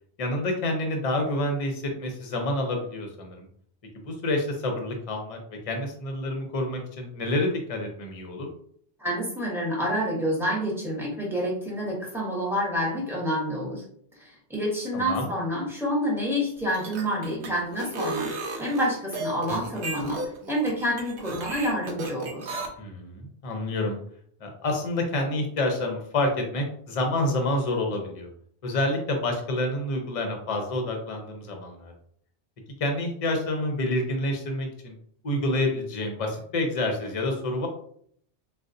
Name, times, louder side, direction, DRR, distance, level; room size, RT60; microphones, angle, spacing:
voice 1, 0.2-3.5 4.0-8.5 14.9-15.3 22.8-24.0 24.4-28.3 28.6-31.9 32.8-34.9 35.2-37.7, left 1 dB, 40° left, 3 dB, 0.6 m, -28 dB
voice 2, 9.0-13.8 14.2-22.6, equal, ahead, -4 dB, 0.9 m, -28 dB
sound 1, 16.6-22.7, right 2 dB, 85° right, 0.9 m, -34 dB
3.7 x 2.3 x 2.6 m, 0.63 s
omnidirectional pair, 1.1 m